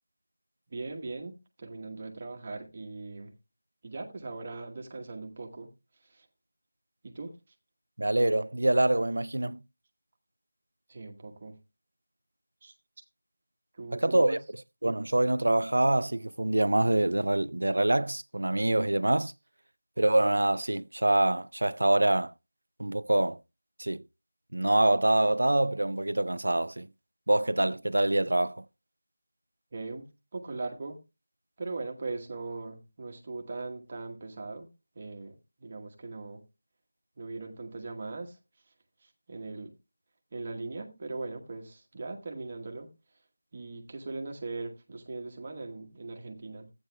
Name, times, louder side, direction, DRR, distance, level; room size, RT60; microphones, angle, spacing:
voice 1, 0.7-3.3 3.8-5.7 7.0-7.3 10.9-11.6 12.6-12.7 13.8-14.4 29.7-31.0 31.6-34.7 35.0-36.4 37.2-38.3 39.3-39.7 40.3-42.9 43.5-46.7, right 3 dB, 25° right, 1.1 m, -39 dB
voice 2, 8.0-9.6 13.9-14.4 14.8-19.3 20.0-22.3 22.8-23.4 23.8-24.0 24.5-26.9 27.3-28.6, right 1 dB, 85° right, 0.4 m, -25 dB
14.0 x 8.8 x 2.2 m
figure-of-eight pair, 180°, 0 cm